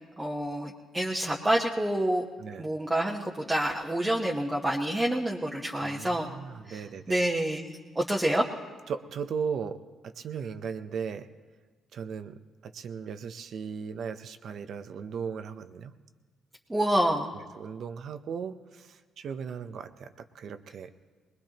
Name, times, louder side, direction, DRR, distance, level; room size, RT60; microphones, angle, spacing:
voice 1, 0.2-2.3 2.6-6.3 6.7-6.8 7.1-8.4 16.7-17.3, right 1 dB, 15° right, -3 dB, 1.2 m, -28 dB
voice 2, 5.8-7.2 8.9-11.3 11.9-15.9 17.5-21.1, right 6 dB, 65° right, 10 dB, 0.8 m, -37 dB
21.0 x 21.0 x 3.0 m, 1.4 s
cardioid pair, 90°, 0 cm